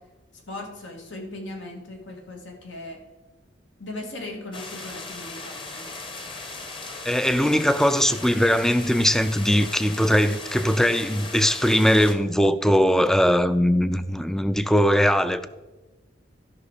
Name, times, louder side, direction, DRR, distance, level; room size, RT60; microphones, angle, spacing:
voice 1, 0.3-3.0 3.8-5.9, left 2 dB, 85° left, 1.9 m, -38 dB
sound 1, 4.5-12.2, left 3 dB, 30° left, 1.0 m, -38 dB
voice 2, 7.1-15.5, equal, 5° left, 0.3 m, -20 dB
12.0 x 5.9 x 4.9 m
head